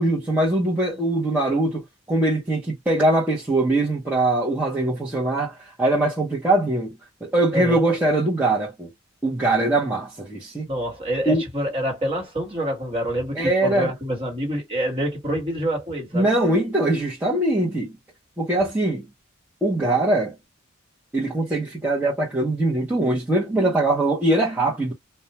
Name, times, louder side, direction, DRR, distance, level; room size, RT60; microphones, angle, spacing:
voice 1, 0.0-1.8 2.1-8.9 9.2-10.7 11.3-11.4 13.3-13.9 16.1-18.0 18.4-19.1 19.6-20.3 21.1-24.9, right 2 dB, 10° right, 0.8 m, -22 dB
voice 2, 7.5-7.8 10.7-16.3, equal, 25° right, 1.4 m, -27 dB
2.3 x 2.1 x 2.9 m
head